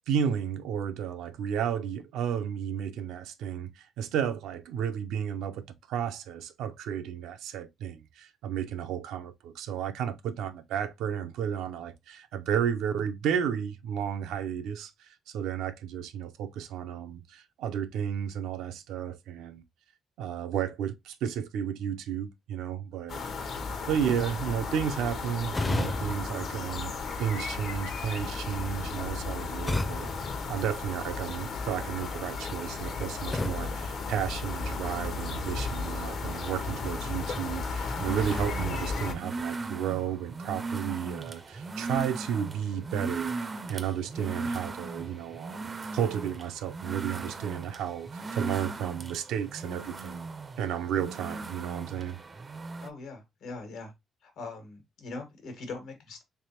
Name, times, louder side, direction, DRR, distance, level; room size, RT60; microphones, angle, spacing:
voice 1, 0.1-19.6 20.2-23.2 23.6-30.1 30.5-43.3 43.7-50.3 50.6-52.2, right 8 dB, 85° right, 0.5 m, -33 dB
Back Garden Spring day, 23.1-39.1, left 4 dB, 65° left, 0.8 m, -35 dB
sound 1, 25.5-27.5 29.7-31.4 33.3-34.9, left 2 dB, 20° left, 0.5 m, -35 dB
sound 2, 36.0-52.9, right 3 dB, 35° right, 0.4 m, -38 dB
voice 2, 52.8-53.9 54.2-56.2, left 3 dB, 80° left, 1.3 m, -41 dB
3.3 x 3.3 x 2.8 m
cardioid pair, 90°, 0 cm